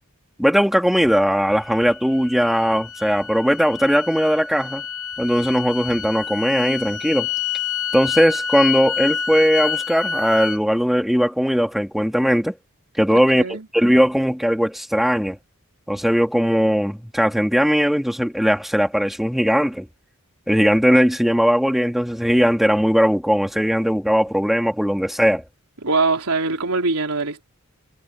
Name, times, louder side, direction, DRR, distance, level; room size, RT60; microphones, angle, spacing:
voice 1, 0.4-4.8 5.2-7.3 7.9-12.5 13.0-15.4 15.9-19.9 20.5-25.4, equal, ahead, 2.8 m, -19 dB
sound 1, 1.4-10.6, left 7 dB, 80° left, 6.9 m, -28 dB
voice 2, 13.1-13.7 25.8-27.4, right 3 dB, 80° right, 3.8 m, -22 dB
head